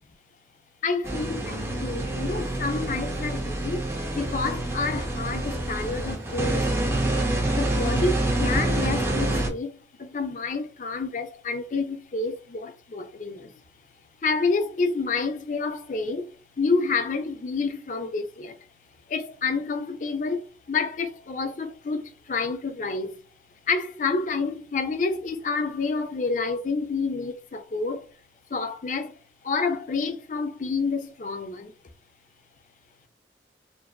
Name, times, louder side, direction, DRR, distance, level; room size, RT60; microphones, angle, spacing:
voice 1, 0.8-1.4 1.8-7.1 7.5-13.5 14.2-18.6 19.1-23.2 23.7-28.1 28.5-29.2 29.4-31.7, left 4 dB, 45° left, 0.4 m, -29 dB
sound 1, 1.0-9.5, right 1 dB, 15° right, 0.5 m, -27 dB
2.5 x 2.4 x 2.2 m
head